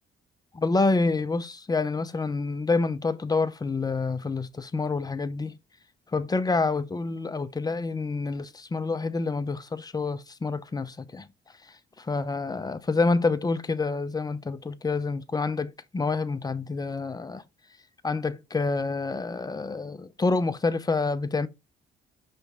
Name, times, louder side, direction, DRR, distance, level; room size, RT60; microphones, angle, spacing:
voice 1, 0.5-5.6 6.1-11.3 11.6-17.4 18.0-21.5, left 3 dB, 20° left, 0.7 m, -27 dB
5.8 x 3.3 x 5.4 m
cardioid pair, 90°, 20 cm